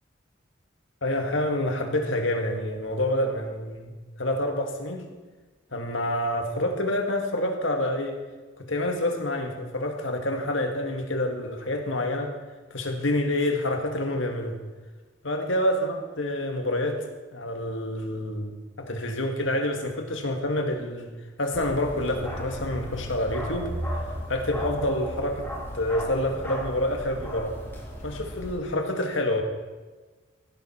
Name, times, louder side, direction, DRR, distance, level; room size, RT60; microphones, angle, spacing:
voice 1, 1.0-3.9 4.2-5.1 5.7-8.2 8.6-12.3 12.7-14.6 15.2-17.1 17.3-21.1 21.4-23.7 24.3-25.5 25.7-27.6 28.0-29.4, left 1 dB, 70° left, 3 dB, 1.9 m, -27 dB
Bark, 21.5-28.6, equal, 10° left, 2.7 m, -35 dB
16.0 x 11.5 x 4.5 m, 1.3 s
head